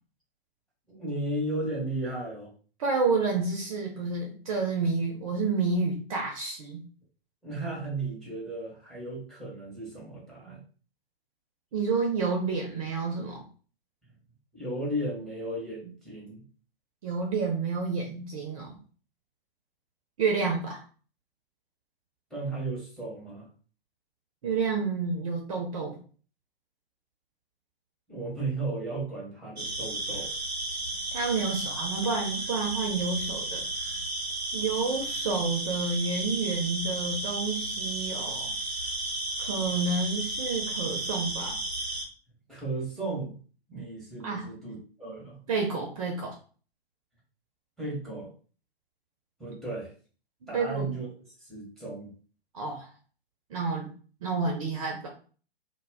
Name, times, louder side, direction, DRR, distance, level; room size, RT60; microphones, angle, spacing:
voice 1, 0.9-2.5 7.4-10.6 14.5-16.4 22.3-23.5 28.1-30.3 42.5-43.4 43.7-45.4 47.8-48.3 49.4-49.9 50.5-51.1 51.4-52.1, right 2 dB, ahead, -4 dB, 0.7 m, -35 dB
voice 2, 2.8-6.8 11.7-13.4 17.0-18.8 20.2-20.8 24.4-26.0 31.1-33.6 34.5-38.5 39.4-41.6 44.2-44.5 45.5-46.3 50.5-50.9 52.5-52.9 53.5-53.9 54.2-55.1, right 4 dB, 35° right, 0 dB, 0.5 m, -29 dB
sound 1, 29.6-42.0, right 2 dB, 85° right, 0.7 m, -33 dB
2.1 x 2.1 x 3.4 m, 0.40 s
figure-of-eight pair, 115°, 31 cm